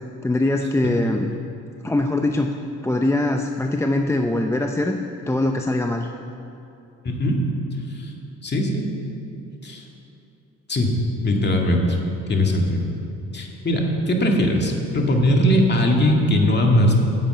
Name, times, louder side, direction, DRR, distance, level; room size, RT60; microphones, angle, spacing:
voice 1, 0.2-1.3 1.8-2.5 2.8-5.0 5.3-6.1, left 2 dB, 10° left, 4 dB, 0.6 m, -22 dB
voice 2, 7.0-7.4 8.0-8.1 8.4-8.9 9.6-9.9 10.7-11.0 11.2-12.0 12.3-12.9 13.3-17.0, left 1 dB, 35° left, 1 dB, 2.0 m, -20 dB
10.0 x 8.7 x 7.9 m, 2.7 s
cardioid pair, 90°, 30 cm